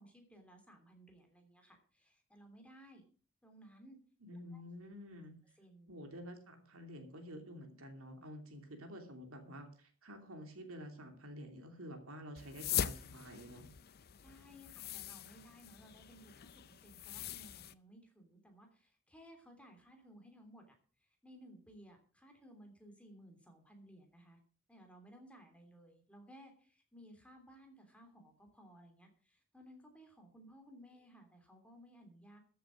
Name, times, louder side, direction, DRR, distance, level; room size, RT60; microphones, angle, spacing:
voice 1, 0.0-3.0 3.4-4.0 4.5-4.6 5.6-5.9 14.2-20.7 21.0-24.4 24.7-32.4, equal, 5° left, 3 dB, 3.0 m, -59 dB
voice 2, 4.2-5.4 5.9-13.7, equal, 70° right, 5 dB, 2.9 m, -50 dB
sound 1, 12.4-17.7, left 10 dB, 45° left, 0.6 m, -42 dB
14.0 x 7.8 x 6.3 m, 0.42 s
head